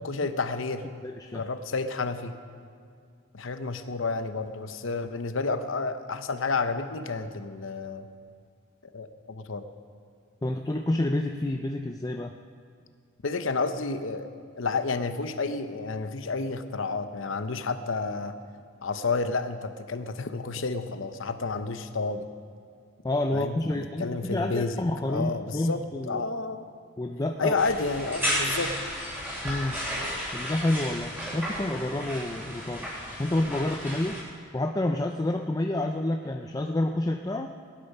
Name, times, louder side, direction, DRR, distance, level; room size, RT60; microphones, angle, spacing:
voice 1, 0.0-0.9 1.3-2.3 3.3-8.1 8.8-9.6 13.2-14.3 14.6-18.3 18.8-22.3 23.3-26.7 27.4-28.8, left 4 dB, 65° left, 9 dB, 0.8 m, -30 dB
voice 2, 1.0-1.4 10.4-12.3 23.0-26.2 27.0-27.5 29.4-29.8 30.3-32.9 33.2-34.2 34.5-37.5, left 1 dB, 15° left, 4 dB, 0.4 m, -29 dB
sound 1, 27.5-34.2, equal, 10° right, 3.7 m, -33 dB
18.0 x 11.5 x 5.6 m, 2.2 s
head